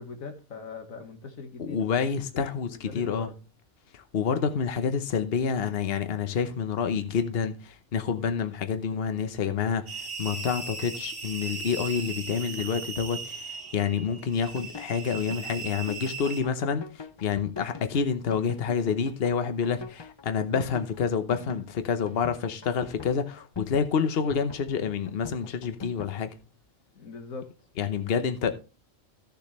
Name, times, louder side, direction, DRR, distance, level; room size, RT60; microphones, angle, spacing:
voice 1, 0.0-1.8 2.3-3.3 26.9-27.5, left 4 dB, 80° left, 1.9 m, -41 dB
voice 2, 1.6-3.3 3.9-26.4 27.8-28.5, left 6 dB, 50° left, 1.0 m, -28 dB
sound 1, 9.9-16.4, right 4 dB, 60° right, 1.8 m, -38 dB
sound 2, 14.6-26.1, left 4 dB, 30° left, 0.5 m, -42 dB
14.0 x 6.9 x 3.1 m
omnidirectional pair, 1.4 m